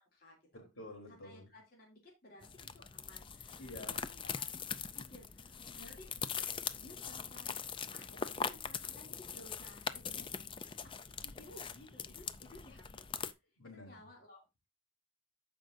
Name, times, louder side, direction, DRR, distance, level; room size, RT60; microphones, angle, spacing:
voice 1, 0.0-0.6 1.1-4.7 5.0-6.1 6.7-13.2 13.7-14.4, left 1 dB, 45° left, 2.7 m, -58 dB
voice 2, 0.5-1.5 3.6-4.0 5.8-5.9 13.6-13.9, left 1 dB, 85° left, 3.4 m, -49 dB
sound 1, 2.4-13.3, left 6 dB, 25° left, 0.4 m, -42 dB
14.0 x 5.2 x 2.6 m
head